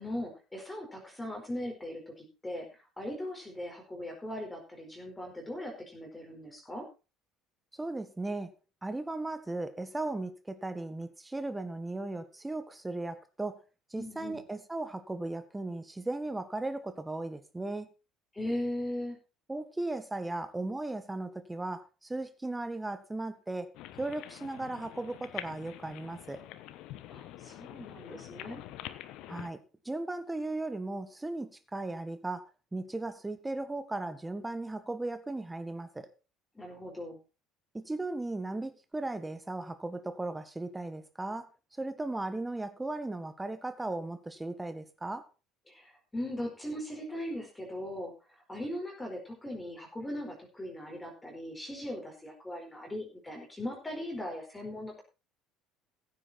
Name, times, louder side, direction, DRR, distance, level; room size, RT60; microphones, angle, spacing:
voice 1, 0.0-6.9 14.0-14.4 18.3-19.2 27.1-28.6 36.5-37.2 45.7-55.0, left 1 dB, 15° left, 4.7 m, -39 dB
voice 2, 7.7-8.5 8.8-13.6 13.9-17.9 19.5-23.7 24.0-26.4 29.3-36.1 37.7-41.5 41.8-45.2, right 2 dB, 10° right, 1.6 m, -37 dB
sound 1, 23.7-29.5, left 13 dB, 55° left, 1.1 m, -46 dB
15.5 x 8.5 x 4.4 m
figure-of-eight pair, 60°, 0 cm